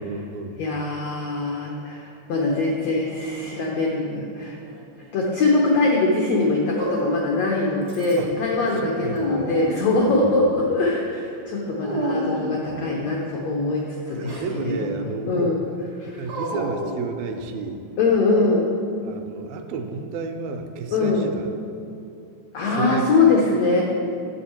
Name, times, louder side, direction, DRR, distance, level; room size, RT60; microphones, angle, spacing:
voice 1, 0.0-0.6 8.2-8.3 8.7-9.5 10.1-10.8 14.2-15.6 16.0-17.8 19.0-21.5 22.7-23.2, right 4 dB, 85° right, 5 dB, 2.4 m, -32 dB
voice 2, 0.6-4.6 5.1-15.6 16.0-16.2 18.0-18.7 20.9-21.2 22.5-23.8, left 3 dB, 90° left, -1 dB, 1.4 m, -22 dB
Dog, 2.5-3.4 4.4-5.3 6.7-7.5 7.9-8.4 8.8-10.1 11.8-12.9 14.1-14.5 16.3-17.6, right 1 dB, 45° right, 0.6 m, -32 dB
10.0 x 7.4 x 4.3 m, 2.5 s
omnidirectional pair, 4.2 m